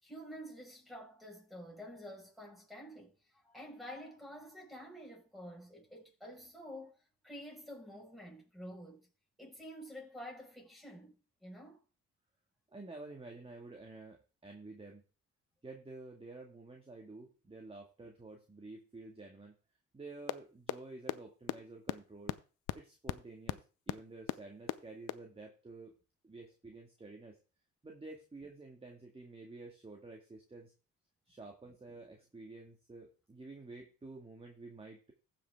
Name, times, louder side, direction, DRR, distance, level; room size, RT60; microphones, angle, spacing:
voice 1, 0.0-7.0 7.2-9.1 9.4-11.8, equal, ahead, 5.1 m, -49 dB
voice 2, 12.7-15.0 15.6-19.5 19.9-22.4 22.7-23.6 23.9-25.9 26.2-27.4 27.8-30.7 31.3-35.1, right 3 dB, 20° right, 1.9 m, -50 dB
sound 1, 20.3-20.4 20.7-20.8 21.1-21.2 21.5-21.6 21.9-22.0 22.3-22.4 22.7-22.8 23.1-23.2 23.5-23.6 23.9-24.0 24.3-24.4 24.7-24.8 25.1-25.2, left 17 dB, 85° left, 0.6 m, -33 dB
15.0 x 5.9 x 3.5 m
cardioid pair, 90°, 30 cm